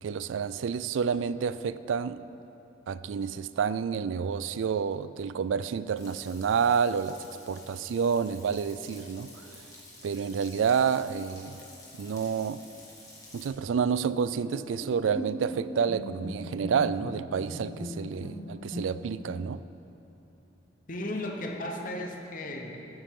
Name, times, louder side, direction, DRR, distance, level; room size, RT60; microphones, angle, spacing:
voice 1, 0.0-2.2 2.9-7.2 7.5-9.6 10.0-11.6 12.0-12.6 13.3-19.6, right 6 dB, 85° right, 15 dB, 0.3 m, -29 dB
Frying (food), 6.0-13.5, left 2 dB, 20° left, 1.9 m, -51 dB
Bowed string instrument, 14.4-19.3, equal, 15° right, 1.2 m, -39 dB
voice 2, 20.9-22.8, left 1 dB, 45° left, 2 dB, 1.0 m, -35 dB
14.5 x 8.7 x 3.7 m, 3.0 s
head